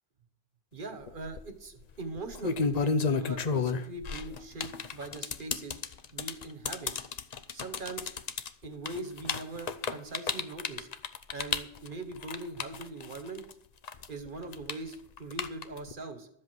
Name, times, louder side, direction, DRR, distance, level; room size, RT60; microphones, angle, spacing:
voice 1, 0.7-5.8 6.1-6.9 7.5-8.1 8.6-10.9 11.3-13.5 14.1-16.3, right 2 dB, 50° right, 8 dB, 1.5 m, -41 dB
Mashing Controller buttons, 1.1-1.4 2.2-13.5 13.8-15.9, left 5 dB, 45° left, 0.7 m, -32 dB
12.5 x 7.8 x 6.1 m, 0.69 s
omnidirectional pair, 1.1 m